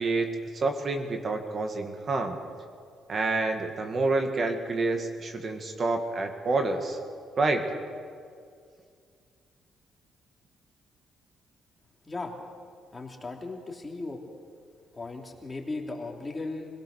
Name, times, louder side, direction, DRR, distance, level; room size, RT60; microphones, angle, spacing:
voice 1, 0.0-2.4 3.1-7.0 7.4-7.6, right 3 dB, 45° right, 5 dB, 2.2 m, -28 dB
voice 2, 12.1-12.4 12.9-14.2 14.9-16.7, left 3 dB, 25° left, 1 dB, 3.1 m, -36 dB
25.5 x 17.5 x 6.6 m, 2.2 s
cardioid pair, 90°, 0 cm